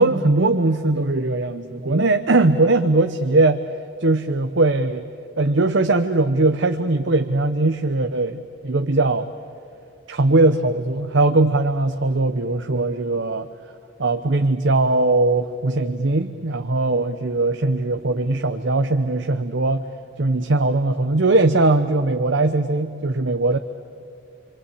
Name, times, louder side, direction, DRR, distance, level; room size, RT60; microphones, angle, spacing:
voice 1, 0.0-3.6 4.0-5.1 5.4-9.3 10.1-13.5 14.0-19.9 20.2-23.6, right 2 dB, 65° right, 7 dB, 0.8 m, -20 dB
29.0 x 23.5 x 8.4 m, 2.4 s
head